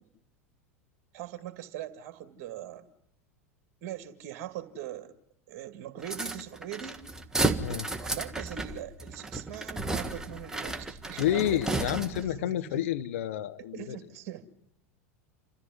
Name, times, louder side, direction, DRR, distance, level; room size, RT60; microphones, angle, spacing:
voice 1, 1.1-2.9 3.8-5.1 5.5-7.0 8.0-12.8 13.7-14.5, right 11 dB, 45° right, 10 dB, 2.2 m, -41 dB
sound 1, 6.0-12.4, right 2 dB, 5° right, 1.5 m, -33 dB
voice 2, 11.2-14.0, left 12 dB, 65° left, 11 dB, 1.1 m, -29 dB
28.0 x 14.0 x 9.7 m, 0.76 s
figure-of-eight pair, 85°, 8 cm